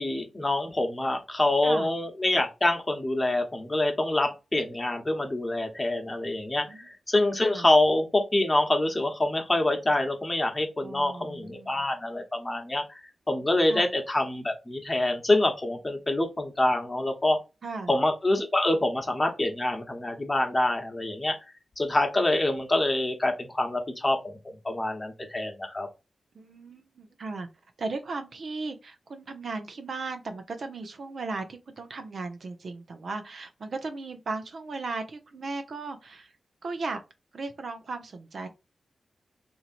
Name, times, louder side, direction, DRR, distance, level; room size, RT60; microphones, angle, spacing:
voice 1, 0.0-13.0 13.3-17.4 17.9-21.4 21.8-24.4 24.6-25.9, left 1 dB, 30° left, 1.0 m, -26 dB
voice 2, 10.8-11.8 13.7-13.9 17.6-17.9 26.3-27.5 27.8-36.3 36.6-37.0 37.3-38.5, right 3 dB, 70° right, 0.6 m, -36 dB
3.0 x 2.7 x 2.5 m
cardioid pair, 45°, 0 cm